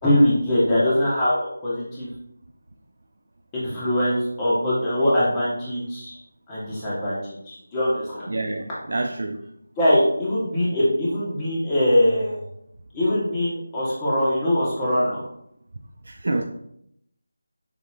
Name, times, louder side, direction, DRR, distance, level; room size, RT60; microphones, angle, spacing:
voice 1, 0.0-2.1 3.5-6.2 6.5-8.3 9.8-12.5 12.9-15.2, left 1 dB, 15° left, -9 dB, 1.2 m, -22 dB
voice 2, 8.3-9.4 16.1-16.4, right 2 dB, 65° right, 3 dB, 0.4 m, -27 dB
7.1 x 3.0 x 2.4 m, 0.74 s
figure-of-eight pair, 165°, 0 cm